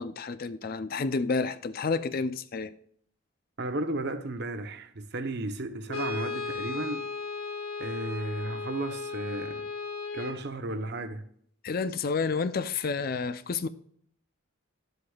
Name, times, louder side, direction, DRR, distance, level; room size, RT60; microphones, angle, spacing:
voice 1, 0.0-2.7 11.6-13.7, left 4 dB, 45° left, 0.5 m, -30 dB
voice 2, 3.6-7.0 7.8-9.7 10.1-11.3, right 2 dB, 55° right, 0.8 m, -34 dB
Brass instrument, 5.9-10.5, left 4 dB, 80° left, 1.4 m, -35 dB
11.5 x 7.9 x 2.3 m
head